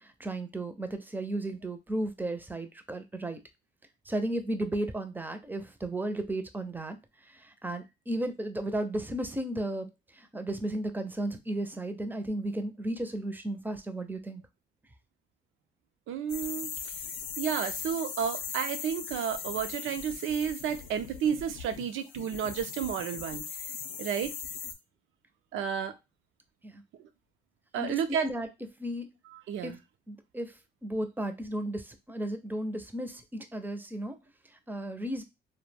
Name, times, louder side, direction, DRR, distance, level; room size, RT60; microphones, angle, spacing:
voice 1, 0.0-3.4 4.1-7.0 7.3-9.9 10.2-14.4 26.6-26.8 27.8-28.5 28.8-29.1 29.6-29.8 30.1-30.5 30.8-34.2 34.7-35.2, right 1 dB, 10° right, 0.4 m, -34 dB
voice 2, 16.1-16.7 17.4-23.4 24.0-24.3 25.5-26.0 27.7-28.3 29.5-29.8, right 8 dB, 80° right, 0.4 m, -31 dB
sound 1, 16.3-24.7, left 7 dB, 80° left, 0.5 m, -39 dB
2.2 x 2.1 x 3.2 m
cardioid pair, 90°, 20 cm